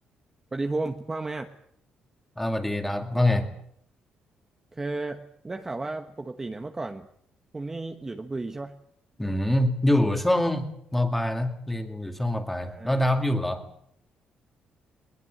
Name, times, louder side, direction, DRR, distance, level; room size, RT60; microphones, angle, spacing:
voice 1, 0.5-1.5 4.7-7.1 7.5-8.7 12.6-13.0, right 2 dB, 15° right, 5 dB, 1.2 m, -33 dB
voice 2, 2.4-3.5 9.2-13.6, left 1 dB, 5° left, 5 dB, 2.4 m, -25 dB
21.5 x 21.0 x 7.9 m, 0.71 s
cardioid pair, 160°, 3 cm